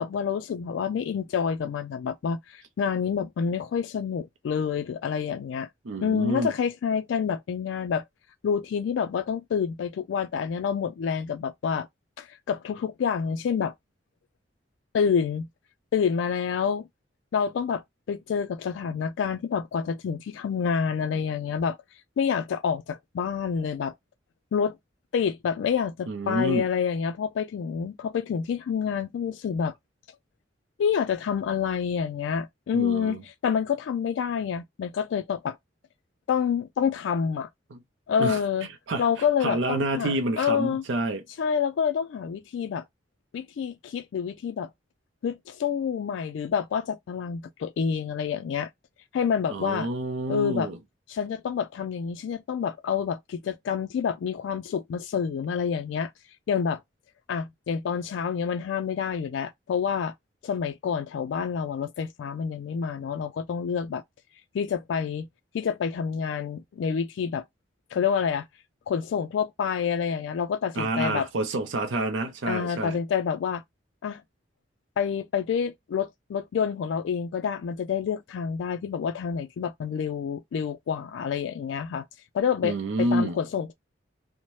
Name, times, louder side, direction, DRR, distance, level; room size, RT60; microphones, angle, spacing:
voice 1, 0.0-5.7 6.0-8.0 8.4-11.9 12.2-13.7 14.9-15.5 15.9-16.9 17.3-17.8 18.1-21.8 22.2-23.9 24.5-24.8 25.1-29.7 30.8-35.6 36.3-37.5 38.1-38.7 39.0-40.8 41.4-42.8 43.3-44.7 45.2-48.7 49.1-49.9 50.3-50.7 51.1-56.1 56.5-56.8 57.3-60.1 60.4-64.0 64.5-65.3 65.5-67.4 67.9-68.5 68.9-71.3 72.5-73.6 74.0-74.2 75.0-82.0 82.3-83.7, left 7 dB, 80° left, 0.3 m, -28 dB
voice 2, 5.8-6.5 26.1-26.7 32.7-33.2 37.7-37.8 38.2-38.4 38.9-39.1 39.4-41.2 49.5-50.8 70.8-73.0 82.6-83.4, right 1 dB, 85° right, 0.5 m, -28 dB
2.7 x 2.0 x 3.0 m
head